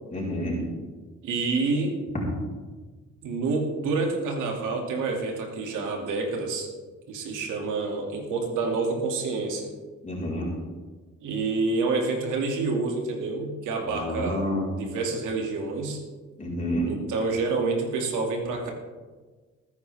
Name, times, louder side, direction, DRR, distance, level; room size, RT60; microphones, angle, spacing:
voice 1, 0.1-0.6 10.0-10.5 13.9-14.7 16.4-16.9, equal, 25° left, -5 dB, 4.3 m, -29 dB
voice 2, 1.2-1.9 3.2-6.7 7.1-9.7 11.2-14.5 14.8-16.0 16.9-18.7, right 3 dB, 85° right, 2 dB, 2.5 m, -28 dB
19.5 x 9.7 x 3.5 m, 1.4 s
cardioid pair, 90°, 30 cm